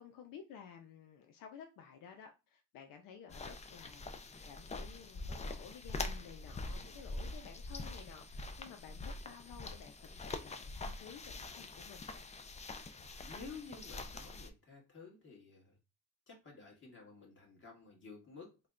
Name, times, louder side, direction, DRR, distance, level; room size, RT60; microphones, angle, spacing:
voice 1, 0.0-4.1 4.4-12.3, left 7 dB, 90° left, 0.6 m, -54 dB
sound 1, 3.3-14.5, left 2 dB, 20° left, 0.4 m, -44 dB
voice 2, 13.2-15.8 16.3-18.7, left 4 dB, 35° left, 1.7 m, -53 dB
3.2 x 2.2 x 3.7 m
cardioid pair, 100°, 33 cm